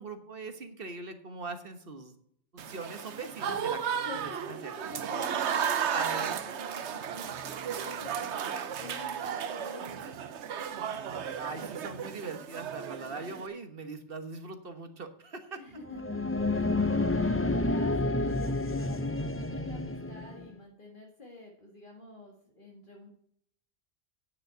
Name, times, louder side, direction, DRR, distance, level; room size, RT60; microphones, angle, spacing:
voice 1, 0.0-2.1 2.5-5.0 5.6-6.3 11.4-15.6, right 4 dB, 55° right, 7 dB, 1.4 m, -41 dB
Applause / Crowd, 2.6-13.5, right 8 dB, 75° right, 1.1 m, -34 dB
voice 2, 4.1-10.2 15.6-23.1, left 1 dB, 45° left, -1 dB, 2.0 m, -48 dB
sound 1, 15.8-20.5, left 2 dB, 20° left, 0.3 m, -29 dB
9.5 x 6.5 x 8.1 m, 0.66 s
omnidirectional pair, 1.2 m